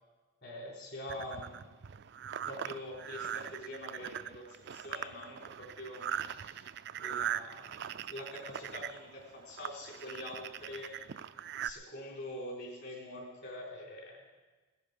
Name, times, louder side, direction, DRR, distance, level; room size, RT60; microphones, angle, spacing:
voice 1, 0.4-1.7 2.4-6.7 7.0-11.1 11.6-14.2, left 1 dB, 55° left, -1 dB, 4.2 m, -45 dB
sound 1, 1.1-11.7, right 9 dB, 55° right, 0.4 m, -41 dB
18.5 x 10.5 x 5.1 m, 1.3 s
head